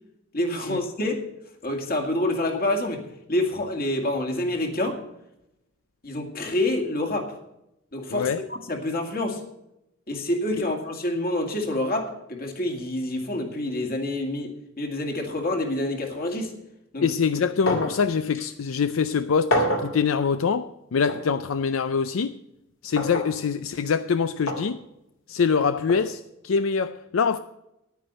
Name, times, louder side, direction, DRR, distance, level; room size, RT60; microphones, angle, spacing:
voice 1, 0.3-1.2 1.6-5.0 6.0-7.3 7.9-8.3 8.7-9.4 10.1-16.5 16.9-17.1, left 1 dB, 50° left, 2.2 m, -27 dB
voice 2, 8.1-8.4 10.6-10.7 17.0-19.5 19.8-22.4 22.8-24.8 25.3-27.4, left 6 dB, 85° left, 0.5 m, -24 dB
sound 1, 17.7-18.0 18.3-18.4 19.5-19.9 21.1-21.2 23.0-23.3 24.5-24.7 25.9-26.0, equal, 70° left, 2.6 m, -26 dB
10.0 x 9.3 x 6.6 m
head